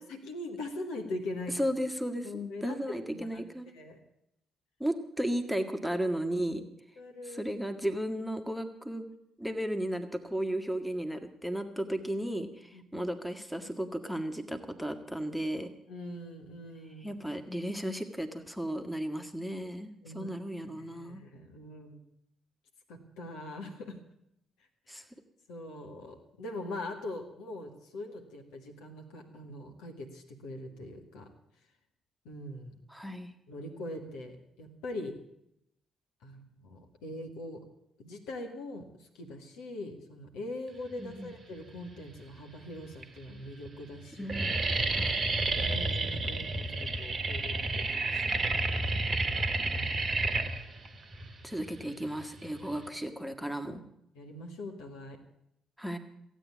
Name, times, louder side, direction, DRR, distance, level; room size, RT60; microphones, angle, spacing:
voice 1, 0.3-1.6 2.2-3.4 3.7-4.0 7.0-7.5 12.7-13.0 15.9-17.2 20.0-20.3 20.8-22.0 22.9-24.0 24.9-25.0 25.5-31.3 32.3-32.8 33.5-35.2 36.2-37.6 38.0-38.9 39.2-44.3 45.5-48.7 49.6-50.0 54.2-55.2, left 1 dB, 65° left, 3 dB, 1.8 m, -42 dB
voice 2, 1.6-2.3 2.6-3.7 4.8-6.6 7.2-9.1 9.4-15.7 17.0-21.2 24.9-25.0 32.9-33.3 41.0-41.3 44.2-44.6 44.9-45.2 51.4-53.8 55.8-56.0, right 1 dB, ahead, 7 dB, 1.7 m, -34 dB
sound 1, 41.7-42.3 42.9-43.0 43.3-43.7 43.9-52.9, right 3 dB, 35° right, 1.3 m, -31 dB
15.5 x 9.1 x 8.5 m, 0.77 s
figure-of-eight pair, 45°, 0 cm